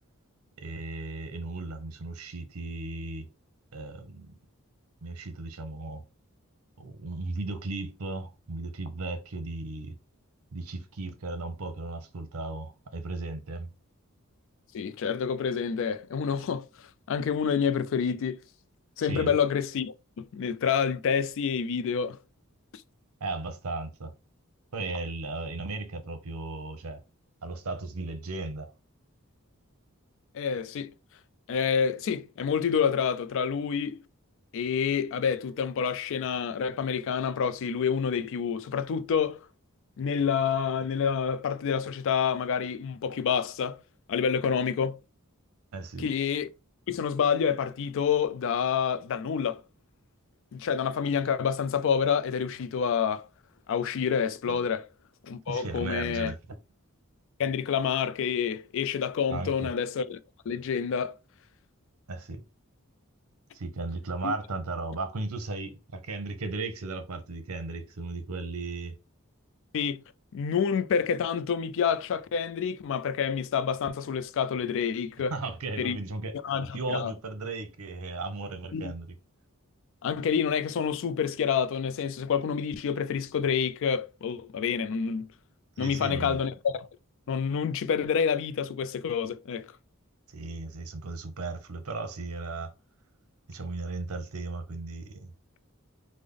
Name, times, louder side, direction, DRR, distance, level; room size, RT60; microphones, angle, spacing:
voice 1, 0.6-3.3 3.7-4.4 5.0-6.0 6.8-9.9 10.5-13.7 19.1-19.4 23.2-24.1 24.7-27.0 27.4-28.7 45.7-46.1 54.4-54.6 55.5-56.4 59.3-59.7 62.1-62.4 63.5-69.0 75.3-76.3 76.7-79.2 85.8-86.4 90.3-92.7 93.5-95.3, right 3 dB, 80° right, 0.7 m, -36 dB
voice 2, 14.7-16.6 17.1-18.4 19.0-22.2 30.3-30.9 31.5-34.0 34.5-39.5 40.0-43.8 44.1-45.0 46.0-46.5 46.9-49.6 50.5-53.3 53.7-54.9 55.2-56.3 57.4-60.2 60.5-61.2 64.2-64.3 69.7-70.0 70.3-75.3 75.8-76.0 76.4-77.1 78.7-78.9 80.0-85.3 85.8-86.9 87.3-89.7, left 7 dB, 60° left, 0.3 m, -28 dB
3.4 x 2.0 x 3.6 m
head